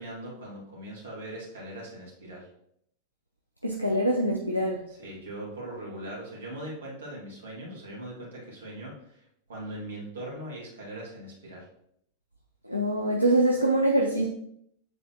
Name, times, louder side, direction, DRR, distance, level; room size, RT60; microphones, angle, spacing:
voice 1, 0.0-2.5 5.0-9.2 9.5-11.7, right 1 dB, 65° right, -3 dB, 2.3 m, -40 dB
voice 2, 3.6-4.8 12.6-14.3, right 1 dB, 90° right, -1 dB, 0.6 m, -24 dB
8.1 x 3.9 x 3.0 m, 0.71 s
figure-of-eight pair, 90°, 0 cm